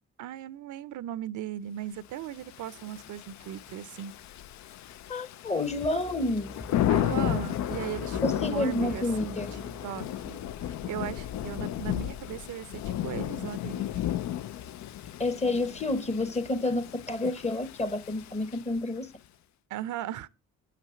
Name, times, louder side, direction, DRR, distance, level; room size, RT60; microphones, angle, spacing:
voice 1, 0.2-4.1 6.9-13.8 19.7-20.3, right 11 dB, 75° right, 0.6 m, -38 dB
Thunder / Rain, 2.4-19.0, left 12 dB, 65° left, 0.5 m, -34 dB
voice 2, 5.1-6.5 8.2-9.6 15.2-19.1, left 2 dB, 20° left, 1.0 m, -29 dB
sound 1, 5.7-12.6, left 2 dB, 40° left, 1.4 m, -45 dB
9.2 x 5.9 x 5.7 m
cardioid pair, 90°, 30 cm